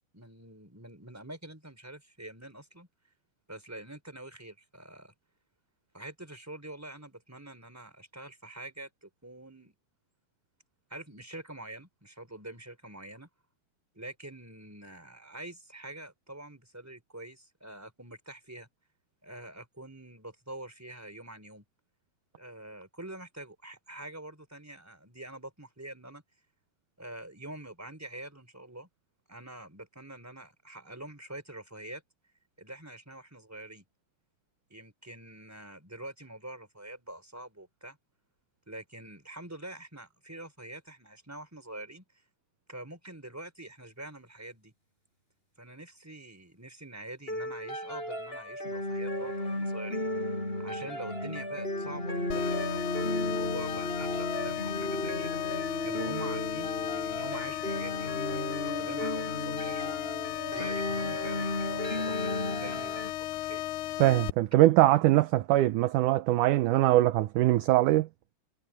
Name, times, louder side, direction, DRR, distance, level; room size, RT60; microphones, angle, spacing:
voice 1, 0.1-2.9 3.5-5.1 5.9-9.7 10.9-13.3 13.9-18.7 19.2-21.6 22.3-26.2 27.0-28.9 29.3-32.0 32.6-33.9 34.7-38.0 38.7-42.0 42.7-44.7 45.6-50.1 50.6-60.0 60.5-63.6, right 1 dB, 5° right, 4.3 m, -45 dB
sound 1, 47.3-63.1, left 1 dB, 15° left, 6.5 m, -34 dB
sound 2, 52.3-64.3, left 15 dB, 80° left, 1.9 m, -35 dB
voice 2, 64.0-68.1, right 16 dB, 75° right, 2.0 m, -22 dB
omnidirectional pair, 4.1 m